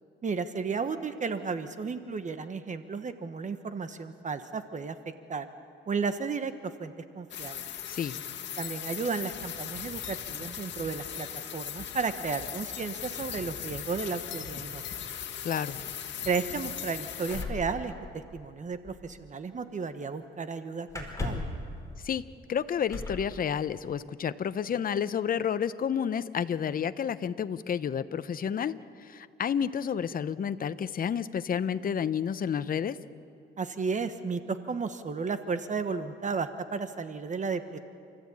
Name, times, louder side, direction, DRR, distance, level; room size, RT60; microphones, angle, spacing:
voice 1, 0.2-5.0 5.3-5.5 5.9-6.5 6.8-7.6 8.6-11.3 11.5-14.8 16.2-17.9 18.3-21.5 33.6-37.8, right 5 dB, 40° right, 10 dB, 1.2 m, -33 dB
sound 1, 7.3-17.4, left 9 dB, 65° left, 1.7 m, -38 dB
voice 2, 7.9-8.2 15.4-15.8 22.0-22.2 22.5-28.7 29.0-33.0, left 8 dB, 45° left, 13 dB, 0.8 m, -30 dB
sound 2, 17.3-18.6 18.9-19.1 20.9-21.6 22.9-23.3 24.4-24.5 24.9-25.4, left 3 dB, 15° left, 4.7 m, -36 dB
29.0 x 14.0 x 8.6 m, 2.4 s
cardioid pair, 90°, 20 cm